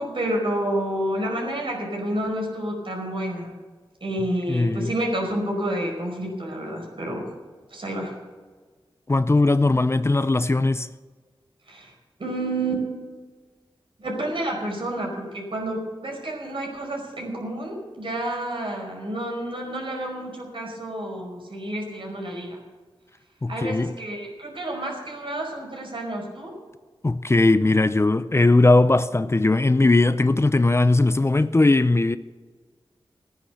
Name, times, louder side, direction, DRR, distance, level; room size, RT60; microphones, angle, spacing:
voice 1, 0.0-3.5 4.0-7.4 7.7-8.2 11.7-11.9 12.2-12.8 14.0-22.6 23.5-26.6, right 1 dB, 65° right, 5.0 m, -29 dB
voice 2, 4.5-4.9 9.1-10.9 23.4-23.9 27.0-32.2, left 2 dB, 25° left, 0.6 m, -19 dB
16.0 x 10.0 x 6.8 m
wide cardioid pair, 65°, 10 cm